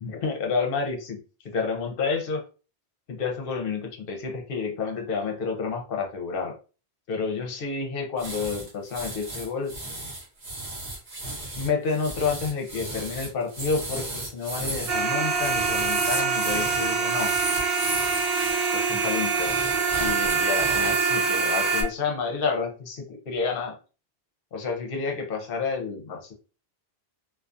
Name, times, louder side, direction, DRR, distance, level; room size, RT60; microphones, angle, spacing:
voice 1, 0.0-1.2 1.4-2.4 3.1-6.6 7.1-9.7 11.6-17.4 18.7-19.6 20.0-23.8 24.5-26.3, left 5 dB, 65° left, 3 dB, 0.8 m, -29 dB
sound 1, 8.2-18.5 19.3-21.2 21.5-21.8, right 1 dB, 45° right, 1.0 m, -35 dB
sound 2, 14.9-21.8, right 5 dB, 70° right, 0.9 m, -25 dB
2.3 x 2.3 x 2.5 m, 0.35 s
omnidirectional pair, 1.1 m